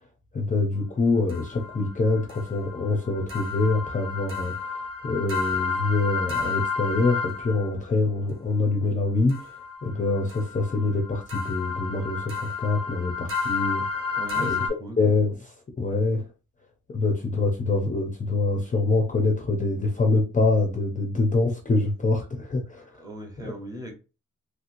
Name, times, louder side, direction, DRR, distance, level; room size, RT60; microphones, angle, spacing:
voice 1, 0.3-4.5 5.0-9.4 9.8-13.9 14.4-14.6 15.0-16.3 16.9-22.8 23.4-23.5, left 3 dB, 25° left, 2 dB, 0.5 m, -25 dB
sound 1, 1.3-7.7 9.3-14.7, left 5 dB, 45° right, 1.1 m, -31 dB
voice 2, 14.1-15.0 22.9-23.9, equal, 10° right, 2 dB, 0.7 m, -38 dB
3.1 x 2.9 x 2.5 m, 0.32 s
wide cardioid pair, 175°, 32 cm